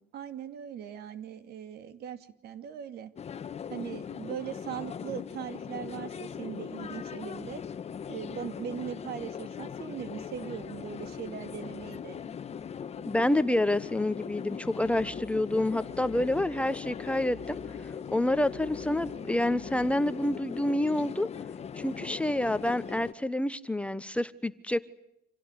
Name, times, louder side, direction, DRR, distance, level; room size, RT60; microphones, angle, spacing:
voice 1, 0.1-3.1 3.7-7.6 8.1-12.2, right 9 dB, 70° right, 11 dB, 2.6 m, -40 dB
sound 1, 3.2-23.1, left 7 dB, 40° left, 1.3 m, -40 dB
voice 2, 13.1-17.6 18.1-21.3 21.8-24.9, left 1 dB, 5° left, 13 dB, 1.1 m, -28 dB
sound 2, 14.9-19.9, right 2 dB, 55° right, 3.0 m, -53 dB
27.5 x 17.5 x 9.9 m, 0.80 s
cardioid pair, 110°, 17 cm